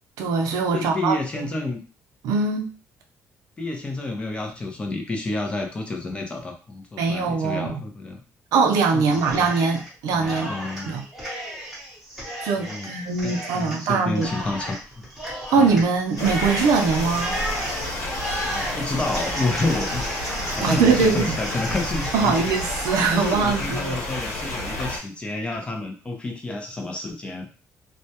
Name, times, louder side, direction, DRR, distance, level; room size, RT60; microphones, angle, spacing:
voice 1, 0.2-1.5 2.2-2.7 7.0-7.8 8.5-10.6 10.9-11.0 12.4-14.3 15.5-17.4 20.6-21.4 22.1-24.0, right 4 dB, 90° right, 4 dB, 0.5 m, -22 dB
voice 2, 0.7-1.8 3.6-8.2 8.9-9.5 10.1-10.9 12.6-12.9 13.2-15.0 15.6-15.7 18.4-22.5 23.1-27.5, left 2 dB, 20° left, 2 dB, 0.5 m, -29 dB
Cheering, 9.1-9.9 10.2-24.6, equal, 5° right, 0.9 m, -34 dB
sound 1, 16.2-25.0, left 1 dB, 75° left, 0.9 m, -30 dB
2.1 x 2.1 x 2.8 m, 0.36 s
cardioid pair, 160°, 6 cm